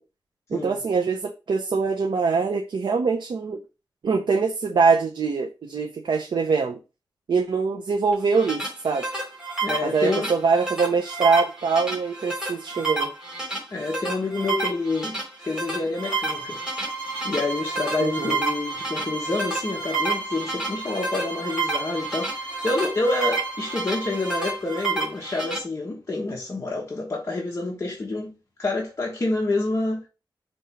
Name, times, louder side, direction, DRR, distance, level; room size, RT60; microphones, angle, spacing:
voice 1, 0.5-3.6 4.0-6.8 7.3-9.0 9.8-13.1 18.0-18.4, right 4 dB, 75° right, 0.8 m, -23 dB
sound 1, 8.1-25.6, right 3 dB, 5° right, 3.3 m, -30 dB
voice 2, 9.6-10.3 13.7-16.6 17.2-28.3 28.6-30.0, left 2 dB, 35° left, 1.3 m, -28 dB
sound 2, 16.0-24.6, right 2 dB, 20° left, 2.1 m, -34 dB
5.3 x 3.8 x 5.7 m
wide cardioid pair, 160°, 8 cm